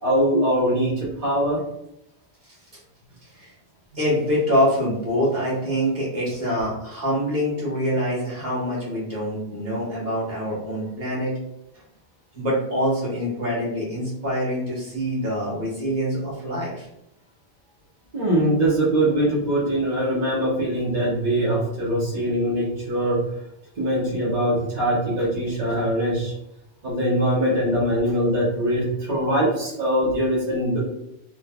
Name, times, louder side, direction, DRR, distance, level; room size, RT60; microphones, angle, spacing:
voice 1, 0.0-1.6 18.1-23.3 23.8-26.3 26.8-30.8, right 1 dB, 40° right, -7 dB, 1.0 m, -22 dB
voice 2, 3.9-11.3 12.3-16.9, equal, 65° right, -5 dB, 1.6 m, -25 dB
3.6 x 3.1 x 2.2 m, 0.79 s
omnidirectional pair, 1.1 m